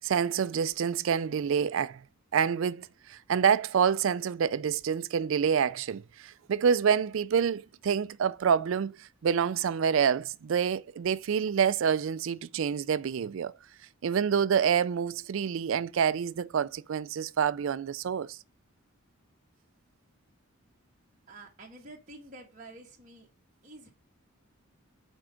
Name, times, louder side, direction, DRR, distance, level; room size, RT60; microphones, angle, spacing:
voice 1, 0.0-2.0 2.3-13.5 14.0-18.4, right 7 dB, 60° right, 0.3 m, -27 dB
voice 2, 21.3-23.3 23.6-23.9, right 2 dB, 35° right, 1.2 m, -49 dB
6.1 x 4.5 x 5.0 m
head